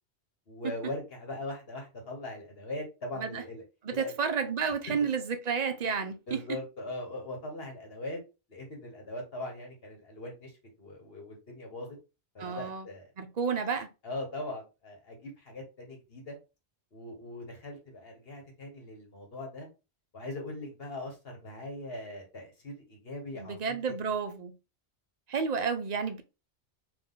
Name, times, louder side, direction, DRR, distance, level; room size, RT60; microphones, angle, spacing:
voice 1, 0.5-3.6 3.9-4.1 4.6-4.7 5.0-5.1 6.3-8.2 8.5-10.5 10.8-12.0 12.3-13.1 14.0-16.4 16.9-19.7 20.1-23.9, left 2 dB, 60° left, 1.5 m, -40 dB
voice 2, 3.8-6.4 12.4-12.9 13.2-13.9 23.3-24.5 25.3-26.2, right 6 dB, 45° right, 0.6 m, -31 dB
3.8 x 2.8 x 3.8 m
omnidirectional pair, 1.1 m